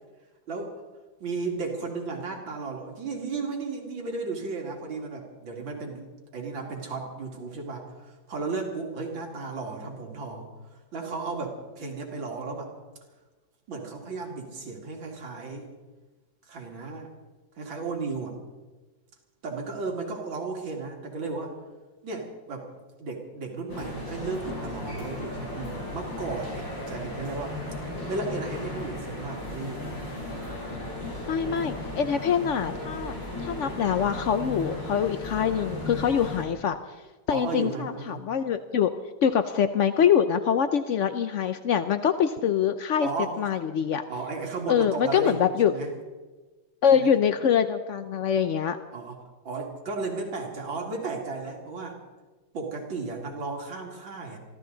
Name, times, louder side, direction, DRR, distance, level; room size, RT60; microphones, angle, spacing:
voice 1, 1.2-12.7 13.7-15.7 16.5-17.1 17.6-18.4 19.4-21.5 22.0-22.7 23.0-27.6 28.1-29.9 31.4-31.6 37.3-38.2 43.0-43.4 44.1-45.4 45.6-45.9 46.9-47.1 48.9-49.2 49.4-52.0 52.5-54.4, right 3 dB, 80° right, 1 dB, 3.1 m, -34 dB
sound 1, 23.7-36.4, left 1 dB, 70° left, 5.5 m, -36 dB
voice 2, 31.3-33.2 33.4-36.8 37.3-38.9 39.2-43.1 43.4-44.0 44.7-45.7 46.8-48.8, left 8 dB, 85° left, 10 dB, 0.6 m, -24 dB
24.0 x 15.0 x 3.9 m, 1.3 s
omnidirectional pair, 2.1 m